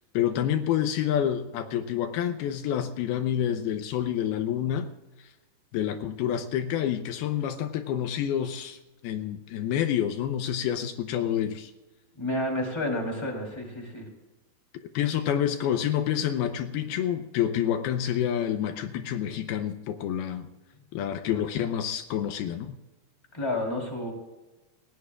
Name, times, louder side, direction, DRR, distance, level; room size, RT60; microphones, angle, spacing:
voice 1, 0.1-4.9 5.7-8.8 9.0-11.7 14.9-20.5 20.9-22.8, left 10 dB, 80° left, 7 dB, 2.7 m, -28 dB
voice 2, 12.1-14.1 23.3-24.1, left 1 dB, 5° left, 0 dB, 3.0 m, -30 dB
29.0 x 16.5 x 2.5 m, 1.1 s
omnidirectional pair, 4.5 m